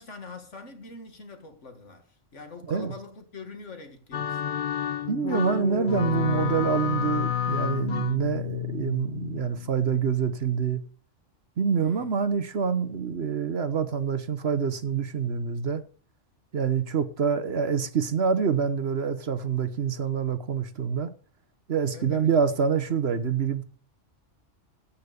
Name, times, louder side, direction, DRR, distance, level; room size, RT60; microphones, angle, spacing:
voice 1, 0.0-4.6 11.8-12.2 21.9-22.4, left 4 dB, 70° left, 2.3 m, -44 dB
sound 1, 4.1-9.9, left 9 dB, 50° left, 0.6 m, -30 dB
voice 2, 5.0-10.8 11.6-15.8 16.5-21.1 21.7-23.6, right 6 dB, 55° right, 1.2 m, -26 dB
16.5 x 5.7 x 6.7 m
omnidirectional pair, 1.3 m